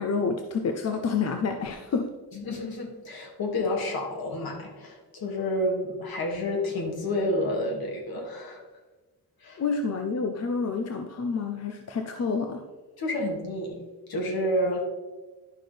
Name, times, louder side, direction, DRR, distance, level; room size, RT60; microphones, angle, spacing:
voice 1, 0.0-2.1 9.6-12.6, left 5 dB, 40° left, 5 dB, 0.7 m, -28 dB
voice 2, 2.3-8.6 9.4-9.6 13.0-13.8 14.1-14.8, left 1 dB, 65° left, 0 dB, 2.3 m, -29 dB
11.5 x 6.1 x 3.4 m, 1.2 s
cardioid pair, 125°, 39 cm